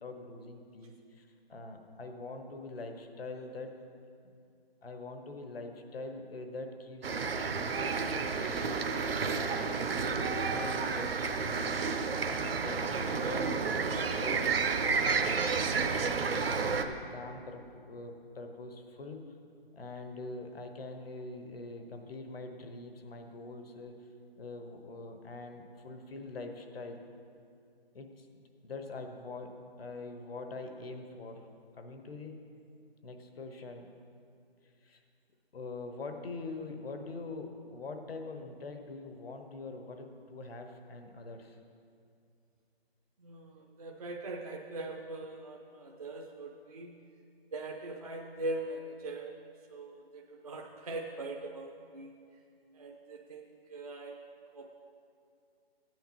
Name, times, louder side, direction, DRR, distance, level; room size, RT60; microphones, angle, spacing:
voice 1, 0.0-3.7 4.8-8.9 9.3-11.9 12.2-19.2 19.7-24.0 24.4-27.0 27.9-28.3 28.6-31.5 31.8-32.4 33.0-33.9 34.8-35.0 35.5-41.6, left 2 dB, 70° left, 5 dB, 1.1 m, -44 dB
sound 1, 7.0-16.9, right 5 dB, 70° right, 0.7 m, -31 dB
voice 2, 43.2-46.9 47.5-49.4 49.7-52.2 52.7-53.4 53.7-54.2 54.5-54.7, right 2 dB, 40° right, 0 dB, 0.4 m, -41 dB
14.0 x 9.1 x 2.9 m, 2.4 s
hypercardioid pair, 165°, 31 cm